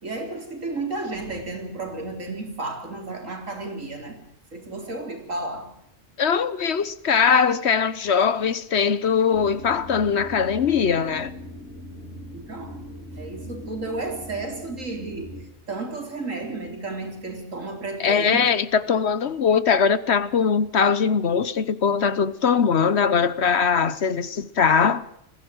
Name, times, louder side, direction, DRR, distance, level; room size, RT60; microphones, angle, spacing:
voice 1, 0.0-4.2 4.5-5.7 12.3-12.8 13.2-18.5, right 2 dB, 80° right, 4.3 m, -33 dB
voice 2, 6.2-11.3 18.0-25.0, left 6 dB, 60° left, 1.2 m, -21 dB
sound 1, 9.3-15.4, left 1 dB, 80° left, 4.6 m, -40 dB
21.5 x 16.0 x 7.8 m
omnidirectional pair, 1.3 m